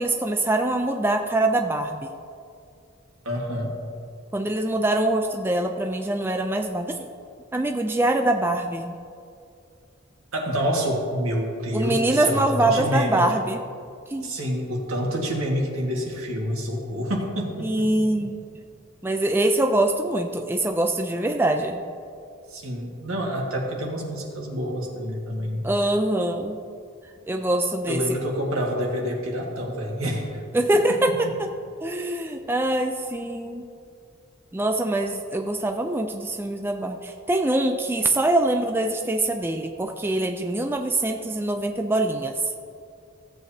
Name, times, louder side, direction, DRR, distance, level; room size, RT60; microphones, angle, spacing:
voice 1, 0.0-2.1 4.3-7.1 7.5-9.0 11.7-13.6 14.1-14.3 17.6-18.4 19.0-21.8 25.6-26.6 27.3-28.0 30.5-31.5 31.8-33.7 34.5-42.3, right 1 dB, 10° right, 4 dB, 0.4 m, -24 dB
voice 2, 3.2-3.8 10.3-13.2 14.2-17.9 18.2-18.3 22.5-25.7 27.9-30.4, equal, 85° right, -1 dB, 1.8 m, -27 dB
15.5 x 7.8 x 2.8 m, 2.4 s
head